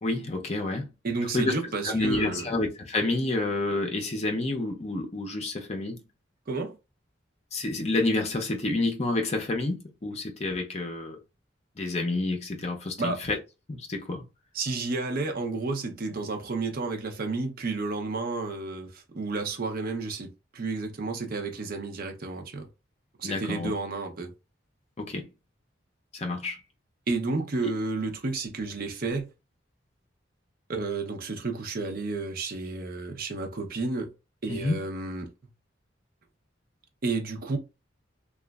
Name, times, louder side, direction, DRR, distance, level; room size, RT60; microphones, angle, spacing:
voice 1, 0.0-0.9 1.3-1.5 1.8-6.0 7.5-11.2 11.8-13.4 13.7-14.3 23.2-23.7 25.0-25.3 26.1-26.6 34.5-34.8, left 2 dB, 35° left, 0.6 m, -29 dB
voice 2, 1.0-2.5 6.5-6.8 13.0-13.2 14.5-22.7 23.2-24.3 27.1-29.3 30.7-34.1 34.4-35.3 37.0-37.6, right 3 dB, 50° right, 0.6 m, -31 dB
2.9 x 2.3 x 2.3 m
head